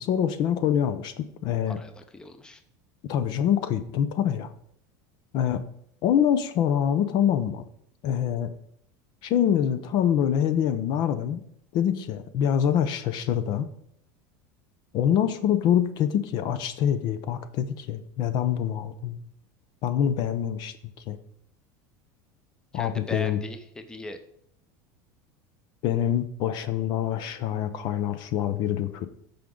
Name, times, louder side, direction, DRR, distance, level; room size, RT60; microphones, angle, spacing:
voice 1, 0.0-1.8 3.1-4.5 5.3-5.6 6.0-7.6 8.0-8.5 9.2-11.4 11.7-13.7 14.9-19.2 19.8-20.8 21.1-21.2 22.7-23.4 25.8-29.1, left 9 dB, 50° left, 11 dB, 0.7 m, -25 dB
voice 2, 1.7-2.6 22.7-24.2, left 2 dB, 10° left, 8 dB, 0.8 m, -39 dB
14.5 x 5.2 x 3.8 m, 0.70 s
supercardioid pair, 140°, 9 cm